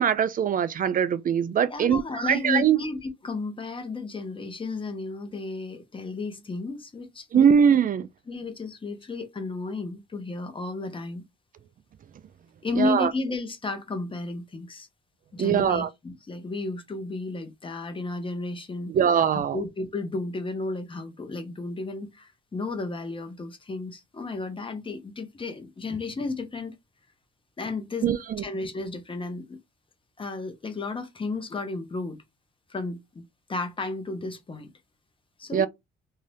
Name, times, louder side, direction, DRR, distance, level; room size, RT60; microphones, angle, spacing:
voice 1, 0.0-2.8 7.3-8.1 12.8-13.1 15.4-15.9 18.9-19.6 28.0-28.2 35.5-35.7, right 8 dB, 45° right, 0.4 m, -22 dB
voice 2, 1.7-7.5 8.3-11.2 12.6-14.9 15.3-18.9 19.3-26.7 27.6-29.6 30.2-32.2 32.7-33.2 33.5-34.7 35.4-35.7, left 3 dB, 25° left, 0.9 m, -33 dB
2.7 x 2.5 x 3.3 m
cardioid pair, 90°, 20 cm